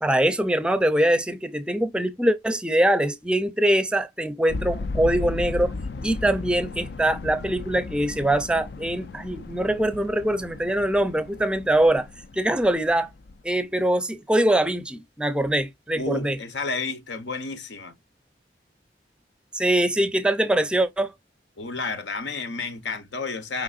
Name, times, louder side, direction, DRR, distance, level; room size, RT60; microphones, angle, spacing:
voice 1, 0.0-5.7 6.0-12.1 12.3-13.1 13.4-16.4 19.5-21.1, right 1 dB, 5° right, 0.5 m, -23 dB
sound 1, 4.5-13.5, left 3 dB, 65° left, 0.4 m, -35 dB
voice 2, 15.9-17.9 21.6-23.6, left 3 dB, 85° left, 0.9 m, -31 dB
5.3 x 3.7 x 2.4 m
head